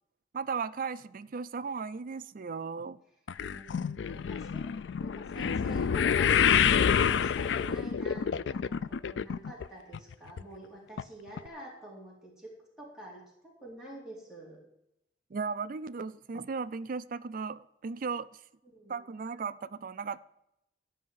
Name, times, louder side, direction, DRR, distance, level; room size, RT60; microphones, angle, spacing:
voice 1, 0.3-3.0 15.3-18.4 18.9-20.2, right 5 dB, 50° right, 0.4 m, -36 dB
sound 1, 3.3-9.7 9.9-10.4 11.0-11.1 11.4-11.5, left 7 dB, 80° left, 0.4 m, -28 dB
voice 2, 3.4-4.7 5.0-6.4 6.7-12.5 12.8-14.6 18.6-18.9, right 1 dB, 5° right, 3.7 m, -47 dB
13.0 x 5.7 x 9.2 m
head